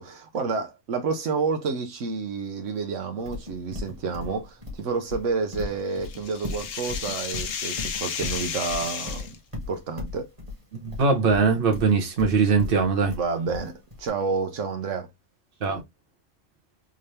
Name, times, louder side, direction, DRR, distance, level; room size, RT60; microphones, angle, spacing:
voice 1, 0.0-9.3 9.7-10.3 13.1-15.1, right 4 dB, 80° right, 1.1 m, -29 dB
Livestock farm animals working animals, 3.3-14.1, left 2 dB, 25° right, 1.6 m, -36 dB
sound 1, 5.5-9.4, left 7 dB, 70° left, 1.0 m, -33 dB
voice 2, 10.7-13.2 15.6-15.8, right 5 dB, 50° right, 1.2 m, -21 dB
3.7 x 2.7 x 3.2 m
omnidirectional pair, 1.3 m